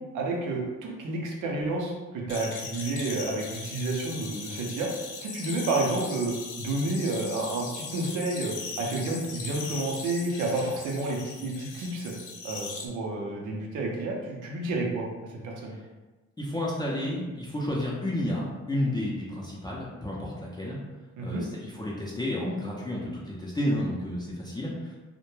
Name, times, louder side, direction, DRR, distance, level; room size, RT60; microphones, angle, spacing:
voice 1, 0.0-4.9 5.2-12.1 12.4-15.7 21.2-21.5, right 2 dB, 85° right, -1 dB, 0.6 m, -30 dB
sound 1, 2.3-12.9, left 4 dB, 85° left, 0.5 m, -39 dB
voice 2, 16.4-20.8 21.2-25.0, left 1 dB, 15° left, -5 dB, 0.5 m, -31 dB
2.2 x 2.1 x 3.0 m, 1.2 s
cardioid pair, 90°, 30 cm